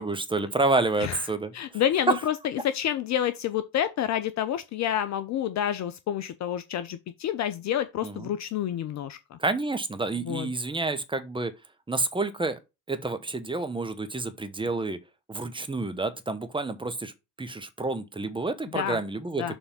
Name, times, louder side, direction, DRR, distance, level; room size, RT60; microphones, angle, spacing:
voice 1, 0.0-1.8 2.1-2.2 8.0-8.3 9.4-11.5 11.9-12.6 12.9-15.0 15.3-17.1 17.4-19.6, right 3 dB, 10° right, 1.0 m, -29 dB
voice 2, 1.5-9.4 10.2-10.5 18.7-19.0 19.4-19.6, left 10 dB, 35° left, 0.6 m, -29 dB
7.1 x 3.5 x 5.2 m
figure-of-eight pair, 60°, 50 cm